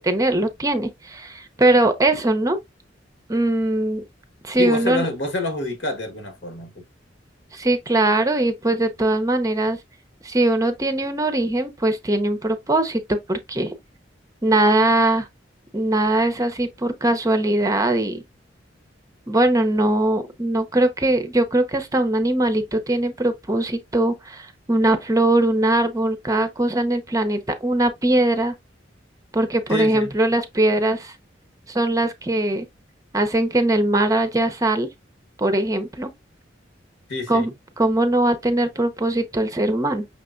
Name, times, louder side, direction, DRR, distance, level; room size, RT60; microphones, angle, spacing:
voice 1, 0.0-2.6 3.3-4.0 4.4-5.1 7.5-9.8 10.2-13.7 14.4-15.3 15.7-18.2 19.3-28.5 29.3-31.1 31.7-32.7 33.1-34.9 35.4-36.1 37.3-37.5 37.8-40.1, right 1 dB, 20° right, 0.6 m, -21 dB
voice 2, 4.6-6.8 29.7-30.1 37.1-37.5, left 2 dB, 75° left, 1.4 m, -27 dB
5.8 x 3.3 x 2.5 m
head